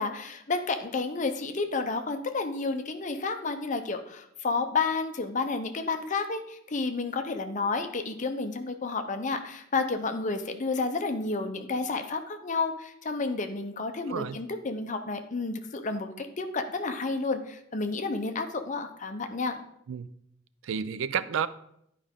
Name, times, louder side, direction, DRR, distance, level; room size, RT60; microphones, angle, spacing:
voice 1, 0.0-19.6, left 3 dB, 40° left, 6 dB, 0.7 m, -31 dB
voice 2, 14.0-14.4 19.9-20.1 20.6-21.5, right 7 dB, 80° right, 15 dB, 0.4 m, -30 dB
10.5 x 5.0 x 3.6 m, 0.74 s
head